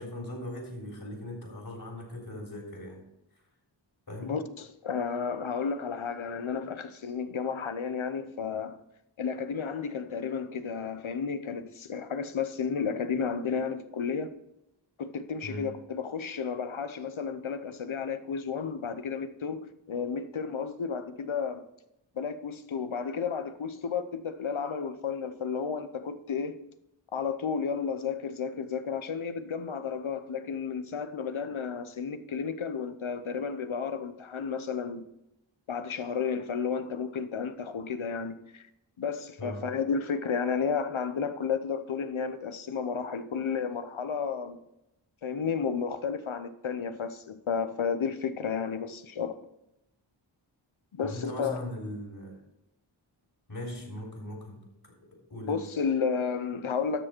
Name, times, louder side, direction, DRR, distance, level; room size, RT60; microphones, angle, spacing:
voice 1, 0.0-3.0 4.1-4.3 15.4-15.6 39.4-39.6 51.0-52.4 53.5-54.9 55.3-55.6, left 1 dB, 55° left, 3.8 m, -39 dB
voice 2, 4.2-8.8 9.2-14.3 15.0-19.6 19.9-21.6 22.1-26.6 27.1-35.1 35.7-38.7 39.0-44.6 45.2-49.4 50.9-51.6 55.4-57.0, left 6 dB, 80° left, 0.9 m, -32 dB
12.5 x 6.6 x 4.4 m
wide cardioid pair, 55°, 47 cm